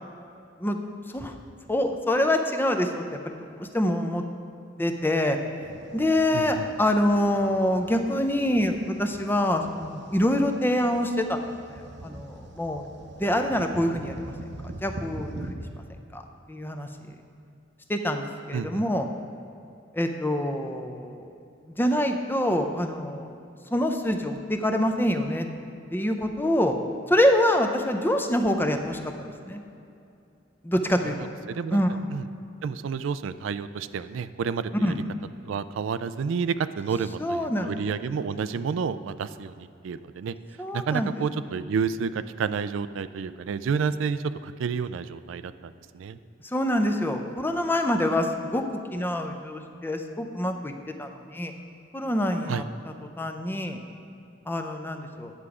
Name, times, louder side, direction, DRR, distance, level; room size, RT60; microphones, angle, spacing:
voice 1, 1.7-4.2 4.8-5.4 5.9-11.4 11.7-12.9 13.1-14.3 14.8-15.6 16.1-16.2 16.5-17.2 17.9-19.1 19.9-21.3 21.8-23.3 23.7-25.5 25.9-26.8 27.1-29.6 30.6-31.2 31.7-32.1 34.8-35.0 37.2-37.7 40.6-41.2 46.4-48.6 48.9-50.7 51.0-51.5 51.9-52.6 53.2-53.8 54.5-55.3, left 1 dB, 10° left, 5 dB, 0.5 m, -25 dB
sound 1, 5.6-15.5, right 1 dB, 60° right, 0.7 m, -43 dB
voice 2, 6.3-6.7 18.5-18.8 31.5-31.8 32.1-32.2 32.6-34.9 35.4-40.3 40.7-46.2 52.5-52.6, right 6 dB, 85° right, 13 dB, 0.3 m, -30 dB
9.7 x 7.0 x 4.9 m, 2.6 s
head